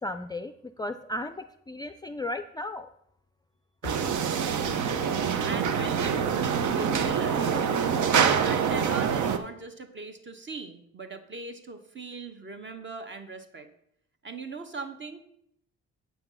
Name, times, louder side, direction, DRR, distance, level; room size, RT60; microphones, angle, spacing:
voice 1, 0.0-2.9, left 1 dB, 15° left, 9 dB, 0.4 m, -35 dB
sound 1, 3.8-9.4, right 7 dB, 75° right, 0.8 m, -25 dB
voice 2, 4.5-4.8 5.4-6.5 6.7-7.6 8.4-13.7 14.2-15.2, right 3 dB, 40° right, 7 dB, 1.3 m, -39 dB
8.4 x 5.8 x 5.6 m, 0.73 s
cardioid pair, 90°, 30 cm